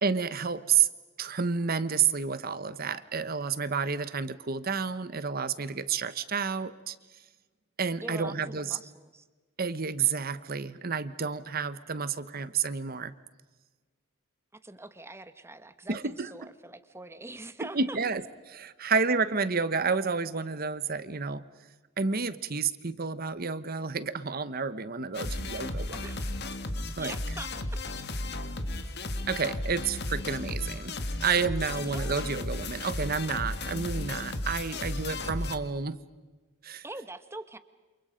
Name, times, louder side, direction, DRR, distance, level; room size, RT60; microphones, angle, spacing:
voice 1, 0.0-0.9 1.2-7.0 7.8-8.8 9.6-13.1 15.9-16.3 17.6-18.2 18.5-21.4 22.0-26.0 27.0-27.1 29.3-30.9 31.2-36.0 36.6-36.8, right 5 dB, 45° right, 14 dB, 1.1 m, -30 dB
voice 2, 8.0-9.3 14.5-18.0 25.9-26.4 27.0-27.8 31.7-32.2 36.8-37.6, right 2 dB, 10° right, 11 dB, 1.1 m, -44 dB
sound 1, 25.1-35.6, left 2 dB, 50° left, 1.6 m, -34 dB
29.0 x 28.0 x 5.2 m, 1.3 s
head